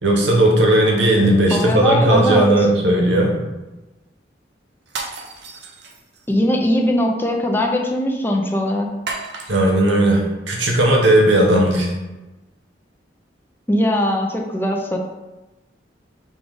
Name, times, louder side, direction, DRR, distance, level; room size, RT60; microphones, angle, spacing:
voice 1, 0.0-3.4 9.5-11.9, right 1 dB, 90° right, -1 dB, 1.0 m, -16 dB
voice 2, 1.5-2.5 6.3-8.9 13.7-15.0, left 1 dB, 10° left, 1 dB, 0.4 m, -20 dB
sound 1, 4.9-6.3 9.1-10.0, right 3 dB, 70° right, 0.6 m, -33 dB
5.1 x 2.4 x 3.8 m, 1.1 s
head